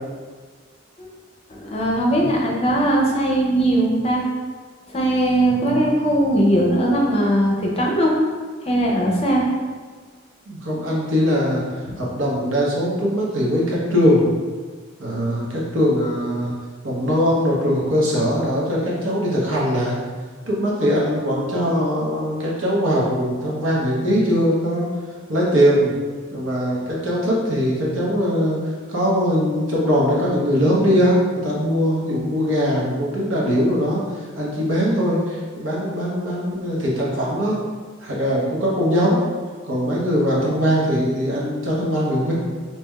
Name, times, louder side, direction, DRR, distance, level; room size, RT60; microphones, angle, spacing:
voice 1, 1.5-4.3 4.9-8.1 8.6-9.5 11.9-12.0, right 1 dB, 30° left, -1 dB, 0.6 m, -19 dB
voice 2, 5.4-6.0 10.5-14.3 15.0-16.5 16.8-20.0 20.5-24.9 25.3-25.9 26.3-28.6 28.9-34.0 34.4-37.6 38.0-39.2 39.6-42.3, equal, 80° right, -5 dB, 1.0 m, -21 dB
4.6 x 2.9 x 2.3 m, 1.5 s
head